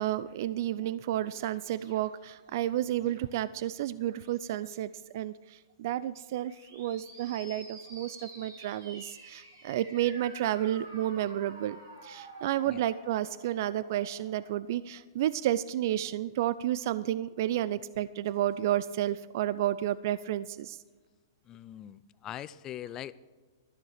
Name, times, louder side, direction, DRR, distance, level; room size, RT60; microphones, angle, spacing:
voice 1, 0.0-20.8, right 12 dB, 55° right, 17 dB, 0.4 m, -31 dB
sound 1, 1.3-3.5 4.0-4.7 6.3-14.6, right 2 dB, 80° right, 4.7 m, -50 dB
voice 2, 21.5-23.1, left 11 dB, 25° left, 17 dB, 0.4 m, -42 dB
13.0 x 7.1 x 6.6 m, 1.4 s
hypercardioid pair, 140°, 2 cm